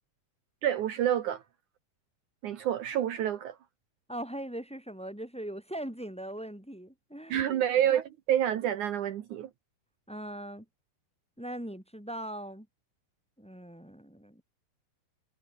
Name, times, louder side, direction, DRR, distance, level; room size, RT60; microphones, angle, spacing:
voice 1, 0.6-1.4 2.4-3.6 7.3-9.5, right 10 dB, 65° right, 2.6 m, -28 dB
voice 2, 4.1-7.4 10.1-10.6 11.4-12.7 13.4-14.4, right 1 dB, ahead, 4.7 m, -40 dB
omnidirectional pair, 4.0 m